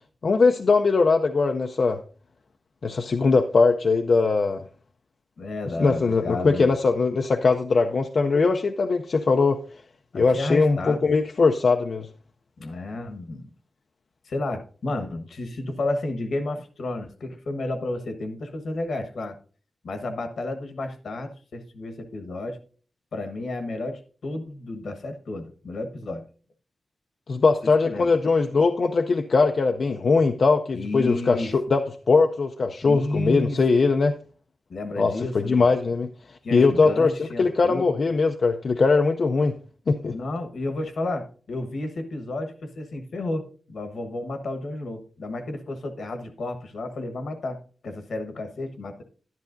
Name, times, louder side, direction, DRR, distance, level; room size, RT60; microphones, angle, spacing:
voice 1, 0.2-2.0 2.8-4.7 5.8-9.6 10.1-12.1 27.3-34.1 35.0-39.6 39.9-40.2, left 4 dB, 55° left, 5 dB, 0.5 m, -21 dB
voice 2, 5.4-6.7 10.1-11.1 12.6-13.5 14.2-19.4 19.8-22.6 23.1-26.2 27.6-28.1 30.7-31.5 32.8-33.6 34.7-35.7 36.4-37.9 40.1-49.0, left 2 dB, 75° left, 6 dB, 1.2 m, -32 dB
11.5 x 10.5 x 2.6 m, 0.40 s
wide cardioid pair, 135°, 0 cm